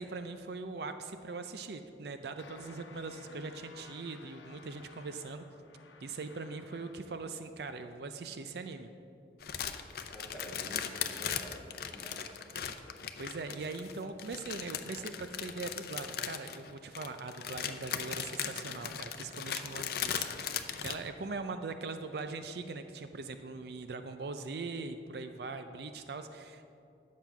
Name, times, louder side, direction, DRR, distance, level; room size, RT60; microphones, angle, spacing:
voice 1, 0.0-5.4 6.0-8.9 10.0-10.2 13.2-26.7, right 3 dB, 60° right, 8 dB, 0.5 m, -41 dB
sound 1, 2.4-7.2, left 3 dB, 90° left, 0.9 m, -55 dB
sound 2, 9.4-21.0, left 8 dB, 55° left, 0.5 m, -38 dB
voice 2, 10.1-12.3, equal, 10° left, -3 dB, 1.6 m, -48 dB
10.5 x 7.4 x 5.9 m, 2.5 s
head